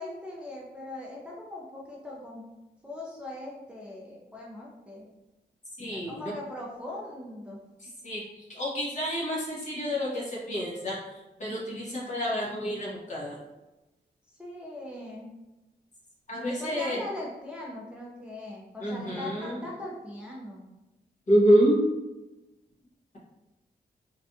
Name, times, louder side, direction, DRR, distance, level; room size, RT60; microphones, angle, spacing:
voice 1, 0.0-2.5 2.8-5.1 5.9-7.6 14.3-15.3 16.6-20.6, left 1 dB, 5° right, -5 dB, 0.5 m, -40 dB
voice 2, 5.8-6.1 8.0-13.4 16.3-17.0 18.8-19.6 21.3-21.8, equal, 45° left, -5 dB, 1.0 m, -27 dB
3.3 x 2.4 x 2.6 m, 1.0 s
wide cardioid pair, 110°, 17 cm